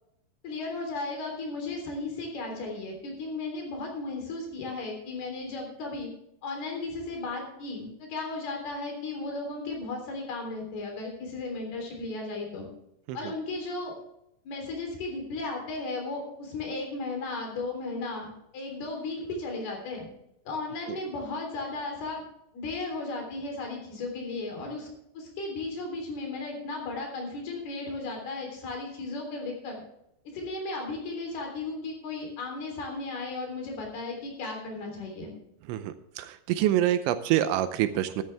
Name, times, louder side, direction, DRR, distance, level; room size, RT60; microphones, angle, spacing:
voice 1, 0.4-6.1 6.4-12.7 13.1-13.9 14.5-20.1 20.5-22.2 22.5-24.9 25.1-29.8 30.3-35.3, left 3 dB, 55° left, 2 dB, 5.3 m, -35 dB
voice 2, 35.7-38.2, right 12 dB, 80° right, 11 dB, 3.0 m, -26 dB
13.0 x 13.0 x 3.4 m, 0.78 s
omnidirectional pair, 5.5 m